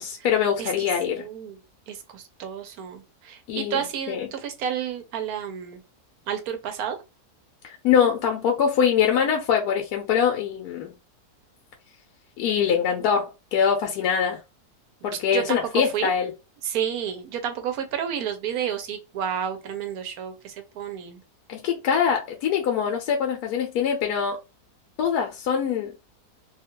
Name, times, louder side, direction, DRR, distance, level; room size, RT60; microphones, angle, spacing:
voice 1, 0.0-1.2 3.5-4.3 7.6-10.9 12.4-14.4 15.0-16.3 21.5-24.4 25.0-25.9, left 7 dB, 75° left, 1.1 m, -23 dB
voice 2, 0.6-1.6 1.9-5.8 6.3-7.0 15.1-16.1 16.6-21.2, right 8 dB, 70° right, 1.1 m, -31 dB
2.8 x 2.3 x 2.9 m
omnidirectional pair, 1.7 m